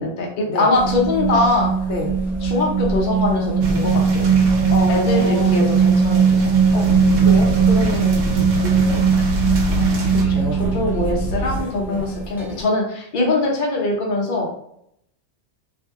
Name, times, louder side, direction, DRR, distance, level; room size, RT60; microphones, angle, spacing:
voice 1, 0.0-1.7 2.4-4.3 4.9-6.5 8.3-8.5 10.3-14.5, left 2 dB, 50° left, -1 dB, 0.8 m, -22 dB
sound 1, 0.7-12.6, right 5 dB, 5° right, 0.3 m, -19 dB
sound 2, 3.6-10.2, right 2 dB, 60° right, 0.8 m, -29 dB
voice 2, 4.7-5.6 6.7-6.9 7.2-9.2 11.9-12.0, left 1 dB, 75° left, 0 dB, 0.9 m, -28 dB
sound 3, 6.3-11.6, right 1 dB, 90° right, 1.0 m, -26 dB
2.5 x 2.1 x 3.5 m, 0.73 s
omnidirectional pair, 1.2 m